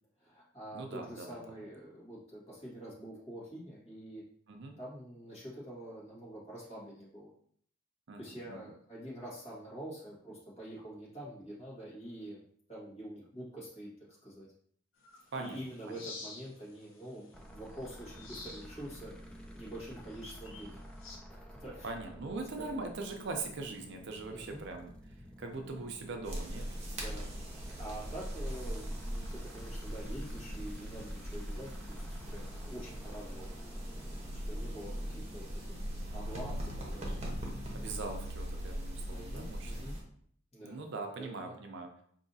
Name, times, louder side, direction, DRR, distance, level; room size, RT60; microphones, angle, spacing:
voice 1, 0.2-4.2 4.8-7.3 8.2-12.4 12.7-13.9 14.2-14.5 15.4-20.8 21.3-21.9 22.6-22.7 24.3-24.6 26.9-27.3 27.8-33.5 34.3-37.2 39.1-39.9 40.5-40.8 41.2-41.6, right 1 dB, 30° left, -6 dB, 1.7 m, -46 dB
voice 2, 0.7-1.4 4.5-4.8 8.1-8.6 15.3-15.6 15.9-16.0 21.8-24.9 25.4-26.7 37.7-39.9 40.6-41.9, right 3 dB, 65° right, 4 dB, 0.5 m, -41 dB
sound 1, 15.0-21.2, left 3 dB, 80° left, 0.8 m, -52 dB
sound 2, 17.3-36.7, equal, 5° left, 0.4 m, -51 dB
sound 3, 26.2-40.0, equal, 35° right, 0.9 m, -40 dB
4.8 x 2.7 x 2.7 m, 0.62 s
head